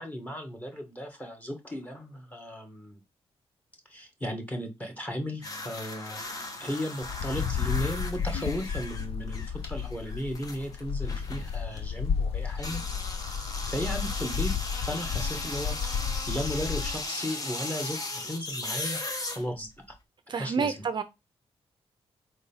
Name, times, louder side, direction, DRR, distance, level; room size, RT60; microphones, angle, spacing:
voice 1, 0.0-3.0 3.9-6.2 6.6-12.8 13.7-20.0 20.3-20.9, equal, 15° left, 1.8 m, -36 dB
sound 1, 5.4-11.9 12.5-20.0, left 2 dB, 35° left, 1.2 m, -37 dB
Wind, 7.0-17.0, left 7 dB, 65° left, 0.5 m, -32 dB
voice 2, 20.3-21.0, right 5 dB, 45° right, 0.6 m, -28 dB
4.5 x 4.1 x 5.6 m
cardioid pair, 115°, 11 cm